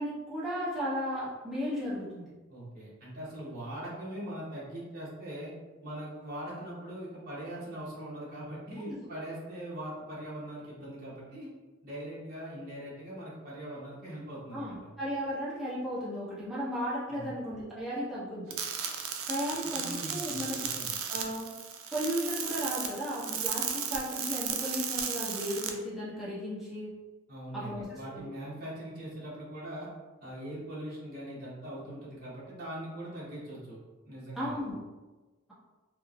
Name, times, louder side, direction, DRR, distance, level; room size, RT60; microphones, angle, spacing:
voice 1, 0.0-2.3 8.9-9.0 14.5-18.5 19.3-20.6 21.1-21.5 21.9-26.9 27.5-28.3 34.4-34.7, equal, ahead, -10 dB, 0.7 m, -35 dB
voice 2, 2.5-5.5 5.8-11.5 11.8-14.8 17.1-17.3 19.6-20.9 27.3-29.9 30.2-33.8 34.0-34.6, right 1 dB, 45° right, -7 dB, 0.8 m, -41 dB
sound 1, 18.5-25.7, right 7 dB, 80° right, 0.3 m, -35 dB
3.1 x 2.0 x 2.3 m, 1.2 s
head